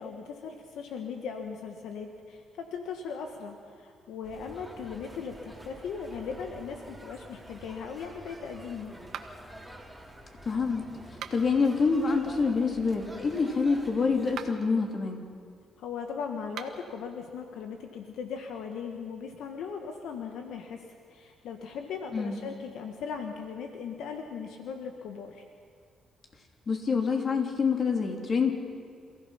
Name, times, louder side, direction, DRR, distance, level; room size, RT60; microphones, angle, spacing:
voice 1, 0.0-8.9 15.8-20.8 21.1-25.4, left 6 dB, 80° left, 4 dB, 1.5 m, -38 dB
sound 1, 4.2-14.5, right 1 dB, ahead, 3.3 m, -48 dB
sound 2, 9.1-9.6 11.1-11.6 14.2-14.7 16.4-16.9, right 8 dB, 75° right, 1.3 m, -42 dB
voice 2, 10.4-10.9 11.3-15.2 22.1-22.4 26.7-28.5, left 5 dB, 45° left, 3 dB, 3.1 m, -26 dB
28.0 x 16.0 x 5.8 m, 2.2 s
cardioid pair, 90°, 0 cm